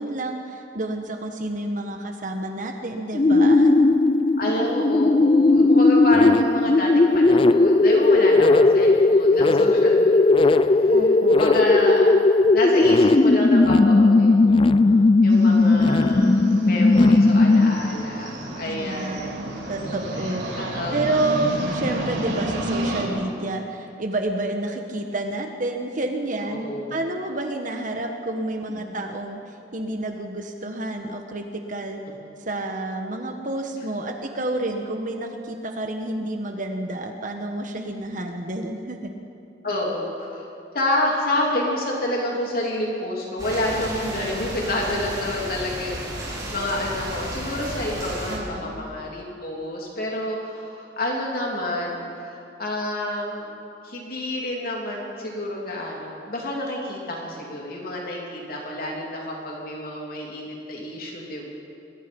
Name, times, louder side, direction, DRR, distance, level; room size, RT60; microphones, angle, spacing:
voice 1, 0.0-3.9 10.9-11.4 18.6-20.6 20.9-32.0 32.4-39.1 48.3-48.8, right 2 dB, 45° right, 4 dB, 1.4 m, -29 dB
sound 1, 3.1-18.0, left 3 dB, 30° left, 0.4 m, -17 dB
voice 2, 4.4-11.0 11.3-16.3 16.6-19.5 20.6-21.2 26.4-27.0 28.7-29.0 39.6-40.5 40.7-53.5 53.8-61.4, left 1 dB, 50° left, -2 dB, 3.2 m, -29 dB
sound 2, 15.3-23.0, right 1 dB, 85° right, 5.0 m, -31 dB
sound 3, 43.4-48.4, right 1 dB, 20° right, 5.5 m, -33 dB
27.0 x 21.0 x 5.4 m, 2.6 s
head